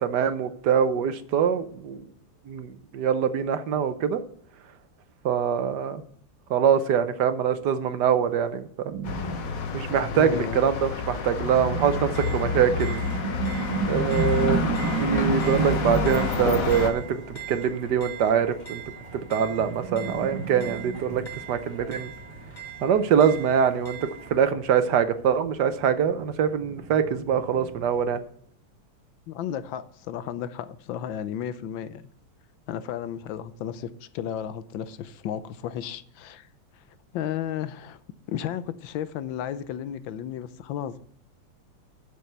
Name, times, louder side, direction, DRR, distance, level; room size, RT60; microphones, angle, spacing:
voice 1, 0.0-2.0 2.5-4.2 5.2-6.0 6.5-8.9 9.7-13.1 13.9-14.6 15.0-18.8 19.1-21.2 21.5-22.1 22.8-28.2, right 7 dB, 70° right, 1.3 m, -24 dB
sound 1, 8.9-17.4 17.7-17.9 18.8-24.2 24.5-24.6 25.0-25.1 25.4-28.2, right 6 dB, 85° right, 2.0 m, -32 dB
sound 2, 9.0-16.9, left 6 dB, 50° left, 1.4 m, -29 dB
voice 2, 10.1-10.6 15.6-15.8 29.3-32.0 32.7-36.5 37.1-38.0 38.3-41.0, left 10 dB, 85° left, 1.5 m, -33 dB
sound 3, 11.8-24.4, right 5 dB, 25° left, 1.9 m, -42 dB
7.6 x 7.0 x 8.0 m
omnidirectional pair, 2.0 m